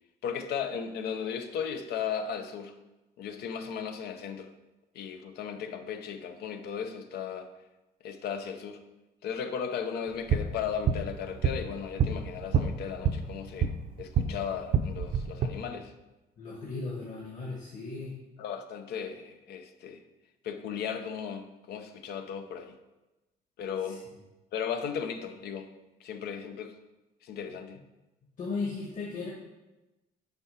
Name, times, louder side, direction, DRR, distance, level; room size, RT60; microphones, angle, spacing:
voice 1, 0.2-2.7 3.2-4.5 4.9-7.5 8.0-8.8 9.2-13.7 14.0-15.9 18.4-20.0 20.4-22.7 23.6-24.0 24.5-25.7 26.0-26.7 27.2-27.8, left 7 dB, 75° left, 7 dB, 0.8 m, -36 dB
sound 1, 10.1-14.3 14.6-15.5, right 6 dB, 55° right, 0.7 m, -28 dB
voice 2, 16.4-18.1 23.8-24.0 28.4-29.3, left 3 dB, 50° left, -4 dB, 1.7 m, -36 dB
6.9 x 4.7 x 5.7 m, 1.0 s
cardioid pair, 110°, 17 cm